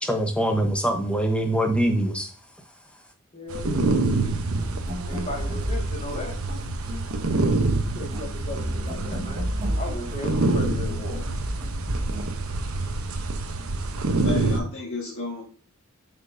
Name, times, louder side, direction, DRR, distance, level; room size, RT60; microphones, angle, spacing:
voice 1, 0.0-2.3, right 1 dB, 5° left, 3 dB, 1.1 m, -23 dB
voice 2, 3.3-3.9 5.1-6.4 7.9-11.2, left 2 dB, 35° left, 0 dB, 1.9 m, -36 dB
sound 1, 3.5-14.6, right 2 dB, 75° right, 0.9 m, -27 dB
sound 2, 4.4-12.3, equal, 35° right, 1.6 m, -33 dB
voice 3, 14.2-15.4, left 3 dB, 65° left, -4 dB, 1.8 m, -31 dB
7.9 x 5.4 x 2.7 m, 0.41 s
head